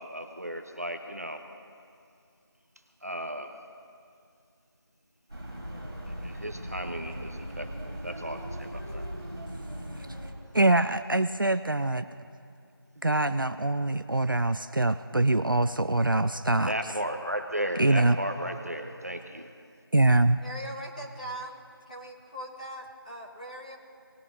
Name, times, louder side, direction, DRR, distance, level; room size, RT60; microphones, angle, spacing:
voice 1, 0.0-1.4 3.0-3.5 6.2-9.1 16.6-19.5, equal, 40° right, 5 dB, 0.9 m, -35 dB
sound 1, 5.3-10.3, equal, 10° right, 1.6 m, -39 dB
voice 2, 10.5-12.1 13.0-16.7 17.8-18.2 19.9-20.4, right 2 dB, 55° right, 11 dB, 0.5 m, -24 dB
voice 3, 20.4-21.6 21.9-23.8, right 1 dB, 20° left, -5 dB, 1.4 m, -40 dB
20.5 x 9.8 x 2.7 m, 2.3 s
figure-of-eight pair, 180°, 13 cm